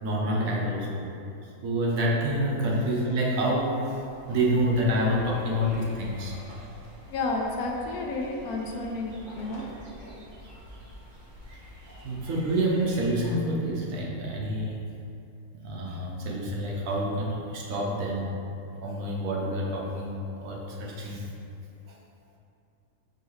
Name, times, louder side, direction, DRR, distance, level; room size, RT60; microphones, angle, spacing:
voice 1, 0.0-1.1 1.6-4.0 4.3-6.4 11.9-14.8 15.6-18.3 18.8-21.3 21.9-22.0, equal, 70° right, -3 dB, 1.0 m, -27 dB
sound 1, 3.5-13.4, equal, 45° right, 0.7 m, -47 dB
voice 2, 7.1-9.6, left 2 dB, 85° left, 1 dB, 1.1 m, -31 dB
4.6 x 2.9 x 3.1 m, 2.7 s
omnidirectional pair, 1.5 m